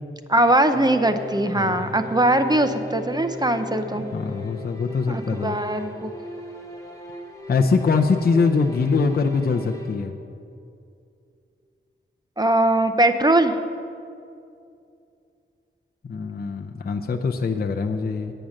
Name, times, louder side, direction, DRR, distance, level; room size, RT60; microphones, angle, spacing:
voice 1, 0.3-4.0 5.1-6.1 12.4-13.5, right 1 dB, 20° right, 8 dB, 0.6 m, -20 dB
sound 1, 0.7-10.0, left 3 dB, 15° left, 2.0 m, -37 dB
voice 2, 4.1-5.6 7.5-10.1 16.0-18.3, left 4 dB, 50° left, 3 dB, 0.6 m, -23 dB
8.9 x 8.4 x 6.4 m, 2.5 s
wide cardioid pair, 75°, 21 cm